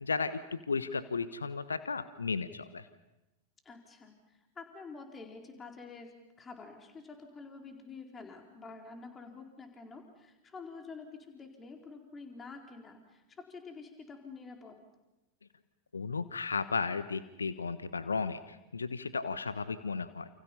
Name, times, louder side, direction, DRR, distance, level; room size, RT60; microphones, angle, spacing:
voice 1, 0.0-2.8 15.9-20.3, left 4 dB, 75° left, 13 dB, 1.2 m, -34 dB
voice 2, 3.6-14.8, left 4 dB, 20° left, 3 dB, 4.3 m, -48 dB
29.5 x 29.0 x 5.6 m, 0.98 s
figure-of-eight pair, 90°, 0 cm